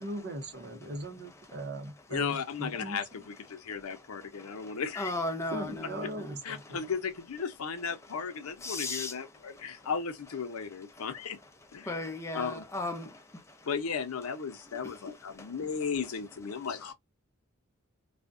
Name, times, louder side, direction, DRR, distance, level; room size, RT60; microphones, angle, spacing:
voice 1, 0.0-3.2 5.5-6.8, right 1 dB, 50° right, 0.7 m, -39 dB
voice 2, 2.1-5.1 6.4-11.4 11.7-12.1 12.3-12.6 13.6-16.9, left 6 dB, 85° left, 0.6 m, -35 dB
voice 3, 4.4-6.3 8.6-9.1 11.0-11.1 11.8-13.6 15.4-15.5, left 2 dB, 15° left, 0.5 m, -36 dB
2.4 x 2.1 x 2.4 m
head